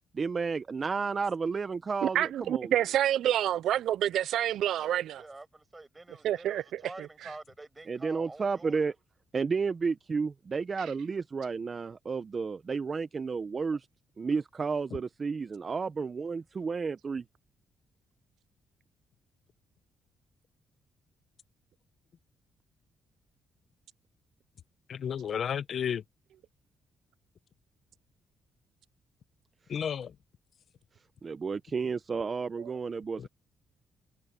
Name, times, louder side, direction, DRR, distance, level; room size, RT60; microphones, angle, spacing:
voice 1, 0.1-2.7 7.9-8.9 9.3-13.9 14.2-17.2 31.2-33.3, right 5 dB, 35° right, 0.7 m, -32 dB
voice 2, 2.0-5.2 6.2-6.8 32.6-32.7, right 11 dB, 75° right, 0.4 m, -28 dB
voice 3, 4.7-9.0, right 2 dB, 20° right, 7.7 m, -48 dB
voice 4, 24.9-26.0 29.7-30.1 33.2-33.3, left 8 dB, 55° left, 0.9 m, -32 dB
cardioid pair, 90°, 0 cm